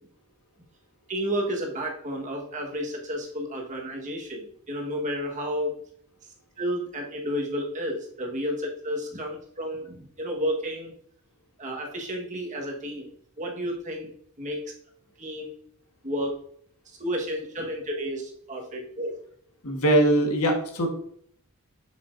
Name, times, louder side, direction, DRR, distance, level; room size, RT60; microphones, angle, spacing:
voice 1, 1.1-5.8 6.6-10.9 11.6-14.1 14.4-14.7 15.2-15.5 16.0-16.4 16.8-19.1, equal, 35° right, 0 dB, 1.4 m, -31 dB
voice 2, 19.6-20.9, right 1 dB, 75° left, 2 dB, 1.5 m, -21 dB
7.0 x 6.9 x 2.6 m, 0.65 s
head